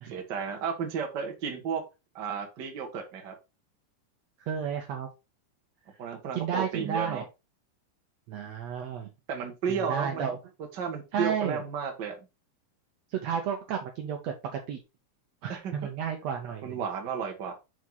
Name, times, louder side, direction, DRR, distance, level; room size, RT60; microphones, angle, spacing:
voice 1, 0.1-1.8 2.1-3.3 6.0-7.2 9.3-10.3 10.7-12.1 15.5-15.7 16.6-17.5, right 6 dB, 55° right, 3 dB, 1.2 m, -33 dB
voice 2, 4.5-5.1 6.3-7.2 8.3-9.1 9.9-10.4 11.1-11.6 13.1-14.8 15.4-16.8, right 8 dB, 85° right, 3 dB, 1.5 m, -32 dB
5.6 x 4.7 x 3.9 m, 0.26 s
omnidirectional pair, 4.0 m